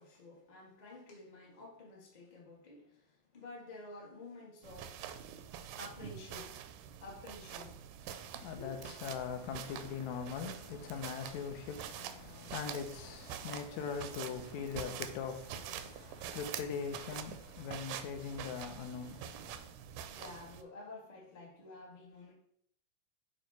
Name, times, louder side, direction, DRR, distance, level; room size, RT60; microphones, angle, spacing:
voice 1, 0.0-5.2 5.7-6.6 7.0-8.0 8.4-8.7 20.1-22.3, left 2 dB, 40° left, 0.6 m, -51 dB
sound 1, 4.6-20.6, right 9 dB, 80° right, 1.9 m, -46 dB
voice 2, 8.1-8.8 9.0-19.7, left 6 dB, 70° left, 1.9 m, -41 dB
8.9 x 3.1 x 4.6 m
omnidirectional pair, 4.0 m